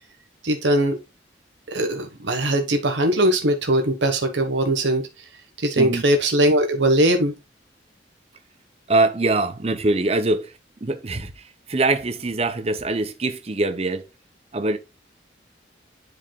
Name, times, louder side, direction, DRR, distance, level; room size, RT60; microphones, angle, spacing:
voice 1, 0.4-1.0 1.7-5.0 5.6-7.3, right 1 dB, 85° right, 1.4 m, -20 dB
voice 2, 8.9-10.5 10.8-11.3 11.7-14.1 14.5-14.8, right 2 dB, 35° right, 0.7 m, -23 dB
10.5 x 4.8 x 2.3 m
head